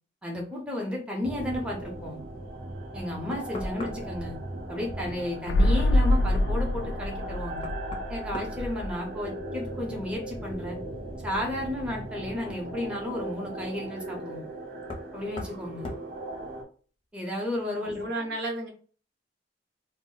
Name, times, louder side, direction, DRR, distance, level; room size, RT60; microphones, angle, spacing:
voice 1, 0.2-2.2 2.9-4.4 4.7-7.7 8.1-10.8 11.2-14.4 15.1-15.9 17.1-18.1, left 1 dB, 5° right, -2 dB, 0.7 m, -33 dB
sound 1, 1.2-16.6, right 1 dB, 55° right, 0.7 m, -38 dB
Knock, 3.3-4.3 6.7-6.8 7.6-9.4 9.7-10.3 12.0-12.1 14.8-15.1 15.4-15.6 15.8-16.1, left 1 dB, 30° left, 0.5 m, -39 dB
sound 2, 5.5-9.2 9.5-9.6, left 1 dB, 90° left, 0.3 m, -25 dB
voice 2, 17.8-18.7, right 2 dB, 75° right, 1 dB, 0.9 m, -33 dB
2.1 x 2.1 x 3.8 m, 0.40 s
head